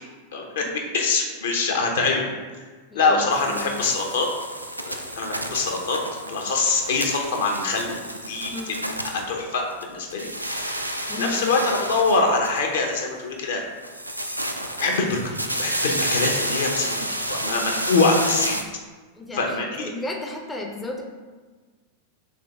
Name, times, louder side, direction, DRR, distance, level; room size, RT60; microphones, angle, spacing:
voice 1, 0.3-2.3 2.9-4.3 4.8-8.0 8.3-8.5 9.0-9.6 9.9-10.9 11.2-13.6 14.8-18.6 19.3-19.9, left 3 dB, 60° left, 1 dB, 0.7 m, -24 dB
voice 2, 2.9-3.9 8.5-8.8 11.1-11.7 19.2-21.1, left 2 dB, 10° left, 2 dB, 0.4 m, -34 dB
sound 1, 3.3-9.8 10.1-12.9 13.8-18.6, equal, 90° right, 0.3 m, -30 dB
3.6 x 3.3 x 3.4 m, 1.4 s
figure-of-eight pair, 90°, 0 cm